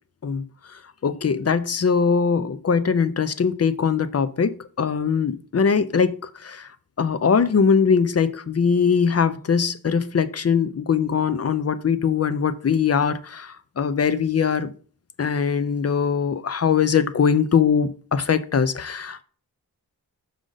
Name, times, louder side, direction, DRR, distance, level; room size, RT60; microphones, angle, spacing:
voice 1, 1.0-6.7 7.0-14.7 15.2-19.2, left 6 dB, 40° left, 0.5 m, -21 dB
6.3 x 5.0 x 3.9 m
wide cardioid pair, 105°, 37 cm